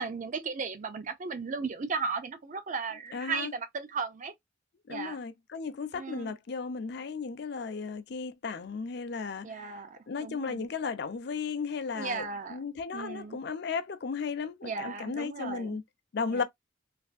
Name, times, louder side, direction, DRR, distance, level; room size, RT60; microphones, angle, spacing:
voice 1, 0.0-4.3 4.9-5.2 5.9-6.3 9.4-10.7 11.9-12.6 12.9-13.4 14.6-15.8 16.3-16.4, right 4 dB, 40° right, 0.5 m, -36 dB
voice 2, 3.1-3.5 4.9-9.7 10.1-12.2 12.5-15.8 16.1-16.4, left 5 dB, 60° left, 0.5 m, -35 dB
3.3 x 2.5 x 2.4 m
head